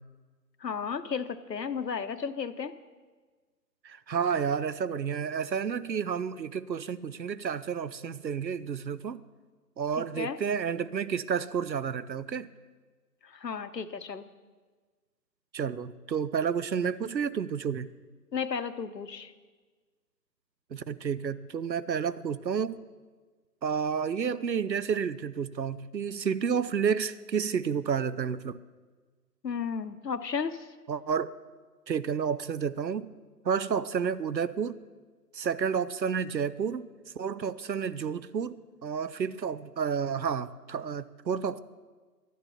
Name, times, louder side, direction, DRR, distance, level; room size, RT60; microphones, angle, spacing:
voice 1, 0.6-2.7 10.2-10.4 13.2-14.3 18.3-19.3 29.4-30.7, left 6 dB, 75° left, 12 dB, 0.9 m, -33 dB
voice 2, 3.8-9.2 9.8-12.5 15.5-17.9 20.7-22.8 23.6-28.6 30.9-31.4 31.9-33.1 33.4-34.8 35.3-36.9 37.2-41.6, right 7 dB, 85° right, 16 dB, 0.7 m, -30 dB
13.0 x 9.4 x 5.8 m, 1.4 s
figure-of-eight pair, 150°, 50 cm